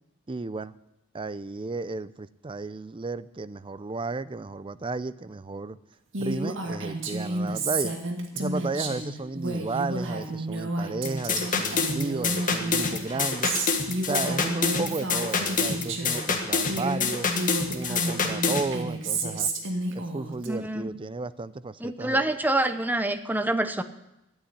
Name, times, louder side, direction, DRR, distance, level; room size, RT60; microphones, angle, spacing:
voice 1, 0.3-0.7 1.1-5.8 6.2-7.9 8.3-13.5 14.0-17.3 17.7-19.5 19.9-22.2, right 3 dB, 25° right, 16 dB, 0.5 m, -33 dB
Female speech woman speaking, 6.1-16.2 16.6-20.5, right 2 dB, 65° right, 2.2 m, -31 dB
sound 1, 11.0-18.7, left 5 dB, 40° left, 1.7 m, -27 dB
voice 2, 20.5-20.9 21.8-23.8, right 1 dB, 10° right, 9 dB, 0.8 m, -26 dB
13.0 x 8.9 x 9.8 m, 0.90 s
head